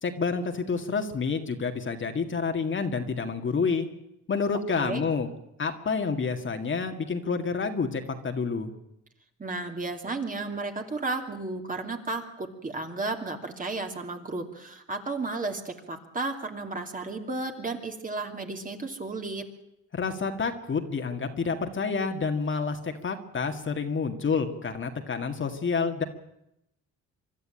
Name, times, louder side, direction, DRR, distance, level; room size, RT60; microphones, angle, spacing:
voice 1, 0.0-3.9 4.3-5.3 5.6-8.7 19.9-26.0, left 5 dB, 40° left, 5 dB, 2.1 m, -29 dB
voice 2, 9.4-19.5, right 3 dB, 25° right, 4 dB, 2.9 m, -33 dB
24.5 x 12.5 x 9.1 m, 0.83 s
cardioid pair, 90°, 30 cm